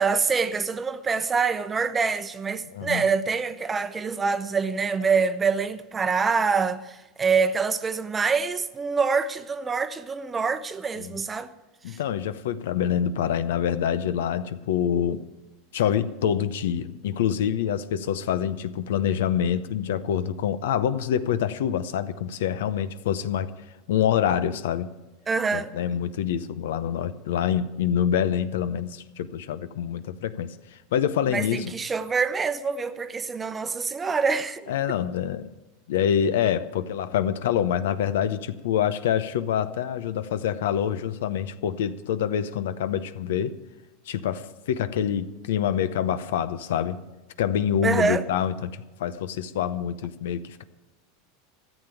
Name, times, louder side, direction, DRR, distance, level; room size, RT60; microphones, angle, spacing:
voice 1, 0.0-11.5 11.9-12.0 25.3-25.7 31.3-34.7 47.8-48.3, right 5 dB, 20° right, 0.8 m, -25 dB
voice 2, 2.7-3.0 11.0-11.2 11.8-15.2 15.7-23.5 23.9-24.9 25.5-31.7 34.7-35.5 35.9-43.5 44.1-47.0 47.4-50.6, left 9 dB, 80° left, 0.7 m, -26 dB
14.0 x 7.2 x 9.1 m
supercardioid pair, 120°, 0 cm